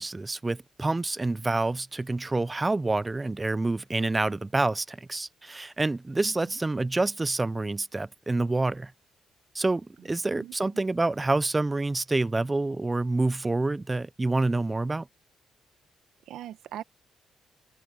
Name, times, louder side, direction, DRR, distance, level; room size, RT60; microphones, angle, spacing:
voice 1, 0.0-8.9 9.5-15.1, right 2 dB, 20° right, 0.6 m, -27 dB
voice 2, 6.2-6.6 10.3-10.8 16.3-16.8, right 12 dB, 85° right, 1.1 m, -42 dB
cardioid pair, 105°, 0 cm